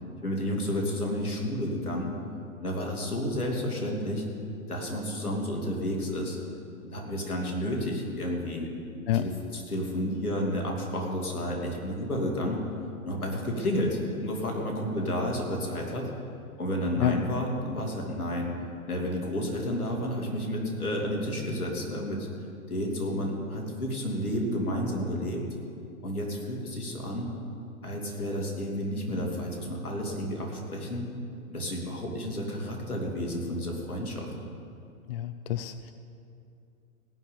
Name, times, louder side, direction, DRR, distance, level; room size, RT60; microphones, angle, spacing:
voice 1, 0.2-2.1 2.6-4.2 4.7-6.4 6.8-8.7 9.1-12.6 13.0-16.1 16.6-18.5 18.9-22.3 22.7-25.4 26.0-27.3 27.8-31.1 31.5-34.3, equal, 85° left, 0 dB, 2.9 m, -31 dB
voice 2, 35.1-35.9, left 12 dB, 45° left, 11 dB, 0.6 m, -28 dB
17.5 x 6.2 x 8.9 m, 2.6 s
figure-of-eight pair, 115°, 43 cm